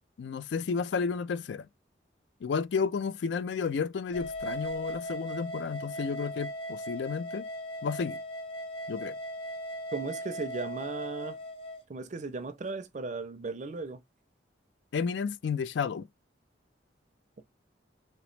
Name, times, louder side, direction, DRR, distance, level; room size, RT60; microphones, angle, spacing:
voice 1, 0.2-1.7 2.4-7.5 7.8-8.2 8.9-9.1 14.9-16.1, left 5 dB, 70° left, 0.3 m, -32 dB
sound 1, 4.1-11.8, equal, 30° left, 0.7 m, -38 dB
voice 2, 9.9-11.4 11.9-14.0, right 3 dB, 40° right, 0.5 m, -36 dB
3.0 x 2.9 x 3.2 m
head